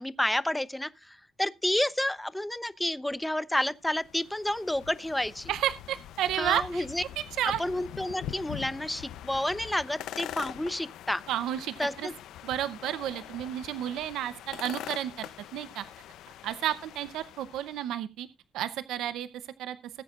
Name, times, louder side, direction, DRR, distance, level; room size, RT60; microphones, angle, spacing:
voice 1, 0.0-5.5 6.4-7.0 7.6-11.2 11.8-12.1, left 1 dB, 5° left, 0.8 m, -30 dB
sound 1, 3.8-17.9, left 11 dB, 85° left, 0.7 m, -44 dB
voice 2, 5.5-6.9 7.2-7.6 11.3-12.1 12.4-15.8 16.4-18.3 18.5-19.3 19.6-19.8, right 11 dB, 85° right, 0.7 m, -32 dB
20.0 x 8.4 x 2.5 m
cardioid pair, 90°, 0 cm